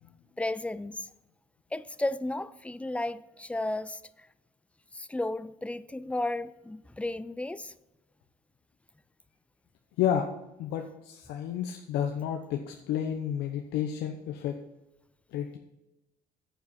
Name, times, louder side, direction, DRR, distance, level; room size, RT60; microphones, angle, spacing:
voice 1, 0.4-1.1 1.7-4.3 4.9-7.7, left 2 dB, 5° left, 0.4 m, -33 dB
voice 2, 10.0-10.3 10.6-14.6 15.3-15.6, left 9 dB, 85° left, 0.9 m, -31 dB
9.5 x 8.2 x 4.2 m
cardioid pair, 110°, 17 cm